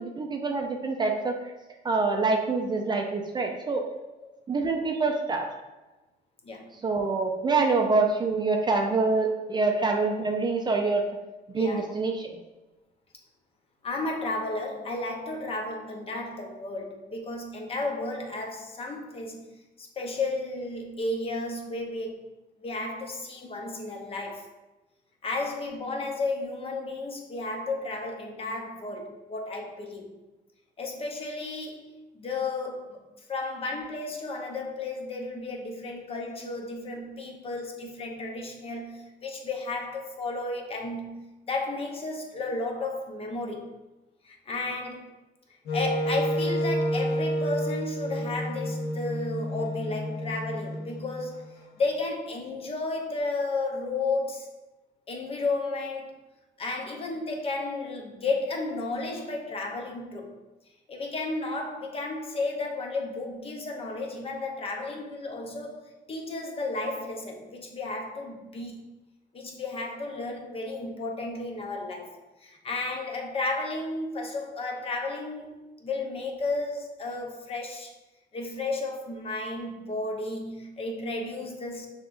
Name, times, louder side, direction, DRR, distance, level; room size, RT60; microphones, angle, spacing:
voice 1, 0.0-1.5 1.8-3.8 4.5-5.5 6.8-11.0 11.5-12.4, right 3 dB, 25° right, 2 dB, 0.4 m, -26 dB
voice 2, 11.6-11.9 13.8-22.3 22.6-24.5 25.2-30.1 30.8-33.0 33.3-41.2 41.5-43.7 44.2-45.1 45.7-54.5 55.1-56.2 56.6-60.3 60.9-65.8 66.1-68.8 69.3-77.9 78.3-81.9, left 2 dB, 35° left, 2 dB, 0.7 m, -33 dB
Wind instrument woodwind instrument, 45.7-51.7, equal, 70° left, 0.7 m, -30 dB
5.9 x 2.8 x 2.5 m, 1.1 s
cardioid pair, 110°, 17 cm